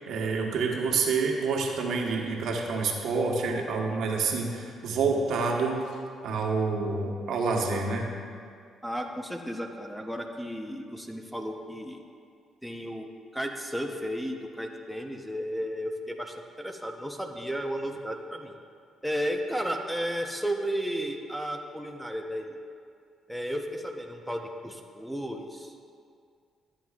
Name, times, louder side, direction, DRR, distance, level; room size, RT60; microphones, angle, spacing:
voice 1, 0.1-5.8 6.2-8.1, right 4 dB, 75° right, 0 dB, 1.2 m, -28 dB
voice 2, 8.8-12.0 12.6-13.1 13.3-18.6 19.0-22.6 23.3-26.0, equal, ahead, 3 dB, 0.8 m, -33 dB
13.0 x 9.1 x 2.4 m, 2.3 s
cardioid pair, 90°, 0 cm